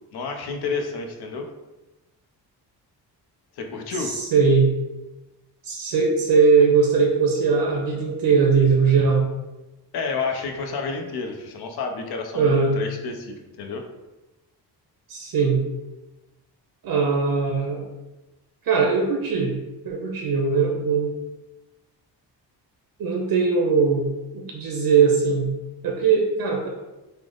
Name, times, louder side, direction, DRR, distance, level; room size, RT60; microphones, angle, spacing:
voice 1, 0.1-1.5 3.5-4.1 9.9-13.8, left 4 dB, 65° left, 4 dB, 0.6 m, -30 dB
voice 2, 4.0-4.7 5.6-9.3 12.3-12.7 15.1-15.6 16.8-17.8 18.7-19.5 19.8-21.1 23.0-24.1 24.3-25.5 25.8-26.7, right 5 dB, 60° right, 1 dB, 0.6 m, -20 dB
3.3 x 2.0 x 3.7 m, 1.0 s
cardioid pair, 110°, 41 cm